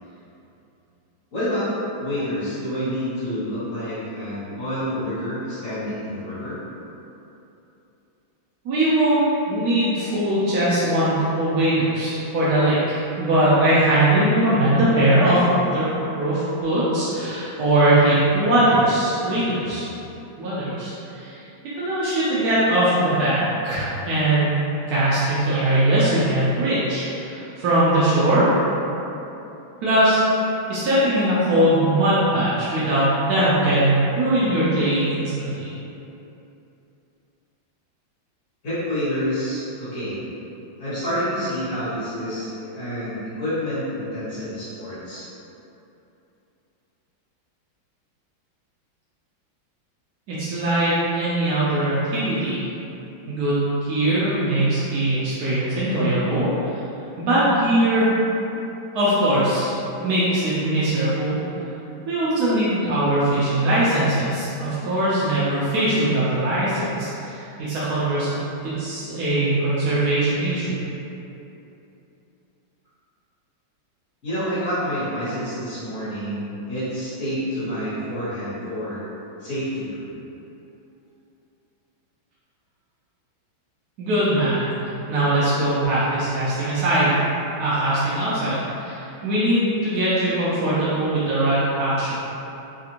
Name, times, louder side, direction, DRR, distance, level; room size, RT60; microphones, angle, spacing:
voice 1, 1.3-1.7 2.0-6.6 38.6-40.2 40.8-45.3 74.2-79.0 79.4-80.1, equal, 45° left, -13 dB, 1.5 m, -28 dB
voice 2, 8.6-15.5 15.7-15.9 16.2-19.9 20.4-21.3 21.8-24.6 24.9-28.5 29.8-30.2 30.7-35.7 50.3-52.6 53.3-56.7 57.2-58.1 58.9-59.7 60.0-61.4 62.1-70.8 84.0-87.2 87.6-92.2, right 1 dB, 80° right, -10 dB, 0.8 m, -21 dB
3.5 x 2.4 x 2.8 m, 2.9 s
omnidirectional pair, 2.3 m